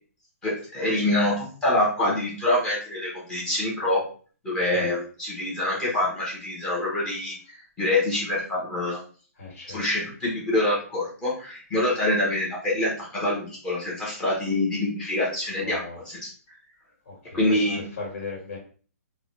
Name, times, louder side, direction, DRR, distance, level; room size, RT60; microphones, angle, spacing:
voice 1, 0.4-4.0 4.4-9.0 9.7-16.3 17.3-17.8, left 1 dB, 10° left, -6 dB, 0.8 m, -26 dB
voice 2, 9.4-9.9 15.5-16.0 17.0-18.6, left 3 dB, 65° left, -3 dB, 1.5 m, -37 dB
3.8 x 2.2 x 3.0 m, 0.42 s
hypercardioid pair, 175°, 9 cm